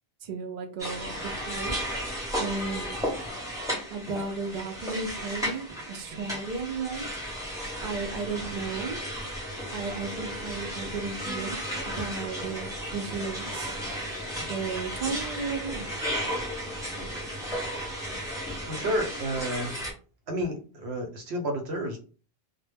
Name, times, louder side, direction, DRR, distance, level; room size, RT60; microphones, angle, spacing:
voice 1, 0.2-1.8 2.4-3.0 3.9-7.1 7.8-9.0 9.7-11.6 11.9-13.8 14.5-15.9, right 4 dB, 55° right, 4 dB, 0.5 m, -34 dB
sound 1, 0.8-19.9, equal, 5° right, 0.7 m, -34 dB
sound 2, 8.4-18.8, right 2 dB, 65° left, 0.7 m, -46 dB
voice 2, 18.7-19.8 20.3-22.0, equal, 80° right, 3 dB, 0.9 m, -30 dB
2.1 x 2.0 x 3.3 m, 0.38 s
omnidirectional pair, 1.1 m